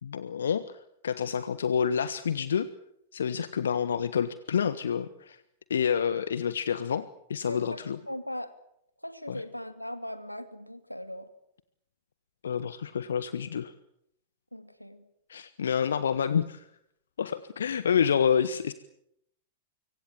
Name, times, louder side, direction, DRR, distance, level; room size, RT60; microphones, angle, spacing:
voice 1, 0.0-0.8 1.0-2.7 3.1-5.4 5.7-8.0 9.3-9.4 12.4-13.7 15.3-16.7 17.2-18.7, left 7 dB, 65° left, 15 dB, 1.1 m, -28 dB
voice 2, 7.5-8.5 9.0-11.3 14.5-15.1, equal, 90° left, 10 dB, 2.4 m, -39 dB
25.5 x 24.5 x 7.4 m, 0.75 s
figure-of-eight pair, 95°, 0 cm